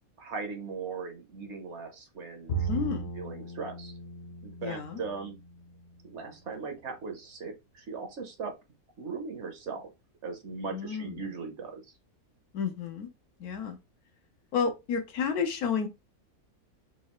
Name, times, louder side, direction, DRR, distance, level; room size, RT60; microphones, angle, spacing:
voice 1, 0.2-2.8 3.2-3.9 4.4-5.3 6.0-8.5 9.0-9.9 10.2-11.8, right 4 dB, 55° right, 1.0 m, -39 dB
Bowed string instrument, 2.5-5.9, right 4 dB, 60° left, 1.2 m, -37 dB
voice 2, 2.7-3.1 4.6-5.0 10.7-11.3 12.5-13.1 13.4-13.8 14.5-15.9, left 6 dB, 85° left, 1.3 m, -31 dB
4.2 x 2.4 x 3.0 m
omnidirectional pair, 1.6 m